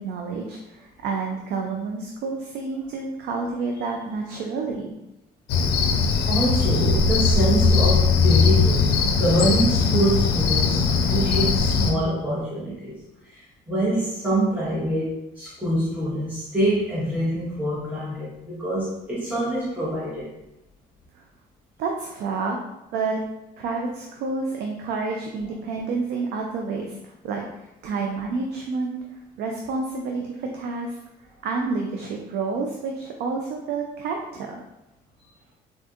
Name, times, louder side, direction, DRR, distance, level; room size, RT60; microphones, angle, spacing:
voice 1, 0.0-4.9 21.1-21.2 21.8-22.6 22.9-23.2 23.6-31.0 31.4-34.6, right 4 dB, 75° right, 2 dB, 0.4 m, -29 dB
Cricket, 5.5-11.9, left 5 dB, 80° left, 0.4 m, -20 dB
voice 2, 5.8-20.3 25.0-25.1, right 1 dB, 10° right, -10 dB, 1.0 m, -25 dB
3.6 x 2.5 x 2.4 m, 0.91 s
cardioid pair, 110°, 17 cm